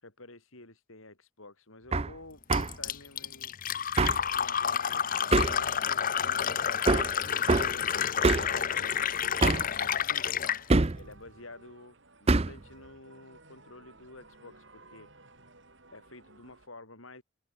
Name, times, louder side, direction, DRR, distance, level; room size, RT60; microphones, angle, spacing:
voice 1, 0.0-3.6 4.3-7.9 8.7-10.4 11.0-15.1 15.9-17.2, left 2 dB, 75° left, 6.0 m, -51 dB
Hammer, 1.9-2.1 2.5-2.7 4.0-4.2 5.3-5.6 6.9-7.1 7.5-7.7 8.2-8.5 9.4-9.7 10.7-11.0 12.3-12.6, right 3 dB, 30° right, 0.6 m, -24 dB
Fill (with liquid), 2.5-10.6, left 8 dB, 40° left, 0.8 m, -29 dB
sound 1, 4.2-16.7, right 2 dB, 60° right, 7.7 m, -57 dB
open air
head